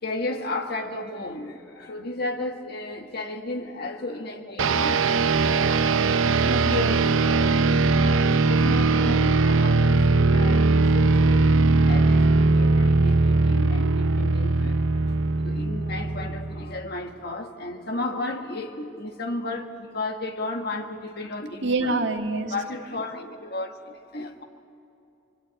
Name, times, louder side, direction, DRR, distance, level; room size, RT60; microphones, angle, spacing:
voice 1, 0.0-5.0 6.5-15.2 15.4-22.1 22.5-24.4, left 2 dB, 50° left, 1.7 m, -34 dB
sound 1, 4.6-16.8, right 3 dB, 90° right, 0.7 m, -20 dB
voice 2, 6.5-6.9 21.6-22.5, right 2 dB, 60° right, 1.9 m, -26 dB
27.5 x 24.0 x 8.9 m
head